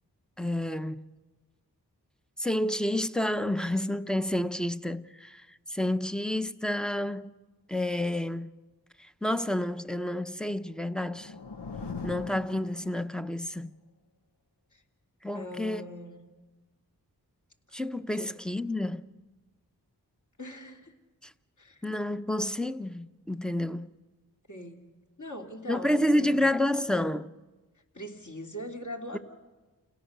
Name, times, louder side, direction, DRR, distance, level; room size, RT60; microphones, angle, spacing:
voice 1, 0.4-1.1 2.4-7.3 7.7-8.5 9.0-11.3 12.0-13.7 15.2-15.8 17.7-19.1 21.2-21.3 21.8-23.9 25.7-27.3 29.1-29.2, left 1 dB, ahead, 0.8 m, -29 dB
sound 1, 10.5-13.4, left 4 dB, 85° left, 1.0 m, -41 dB
voice 2, 15.3-16.3 18.2-18.3 20.4-20.9 21.6-21.9 24.5-24.8 25.2-26.6 27.9-29.2, left 1 dB, 45° left, 3.2 m, -41 dB
29.5 x 17.5 x 6.8 m
cardioid pair, 45°, 40 cm